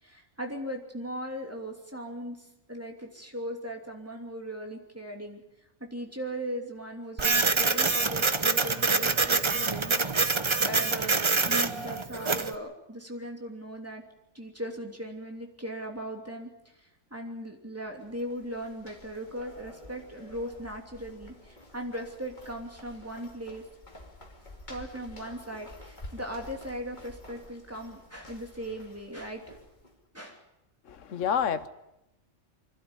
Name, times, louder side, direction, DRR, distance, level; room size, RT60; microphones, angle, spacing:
voice 1, 0.0-5.4 5.8-14.0 14.3-23.6 24.7-29.6 30.1-30.4, equal, 10° right, 1 dB, 3.0 m, -38 dB
Printer, 7.2-12.5, right 4 dB, 25° right, 0.8 m, -25 dB
sound 1, 17.9-30.0, left 1 dB, 40° left, 2.6 m, -50 dB
voice 2, 30.9-31.7, left 8 dB, 85° left, 13 dB, 1.3 m, -28 dB
26.0 x 12.0 x 9.8 m, 0.89 s
omnidirectional pair, 1.3 m